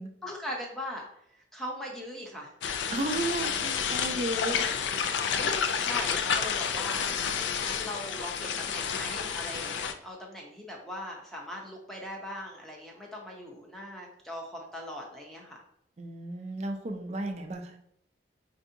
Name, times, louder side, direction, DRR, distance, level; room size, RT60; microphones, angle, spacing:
voice 1, 0.2-2.5 5.8-7.1 7.5-15.6, left 1 dB, ahead, -1 dB, 0.6 m, -40 dB
sound 1, 2.6-9.9, left 7 dB, 75° left, 0.3 m, -30 dB
voice 2, 2.9-4.6 16.0-17.8, right 1 dB, 35° right, 4 dB, 0.4 m, -33 dB
4.6 x 2.6 x 2.6 m, 0.74 s
head